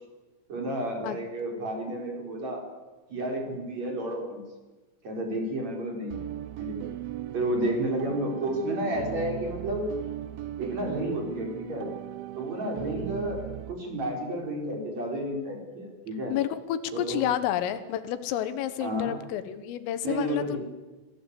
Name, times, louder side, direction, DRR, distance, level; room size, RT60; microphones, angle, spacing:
voice 1, 0.5-2.6 3.1-4.4 5.0-6.2 6.6-6.8 7.3-9.9 10.6-11.9 12.4-13.4 13.7-16.3 16.9-17.3 18.8-19.1 20.0-20.6, right 1 dB, 35° right, 2 dB, 5.1 m, -31 dB
sound 1, 6.1-13.7, right 13 dB, 75° right, 3.2 m, -37 dB
voice 2, 16.3-20.6, left 11 dB, 80° left, 12 dB, 3.8 m, -30 dB
25.5 x 18.0 x 8.3 m, 1.2 s
omnidirectional pair, 5.9 m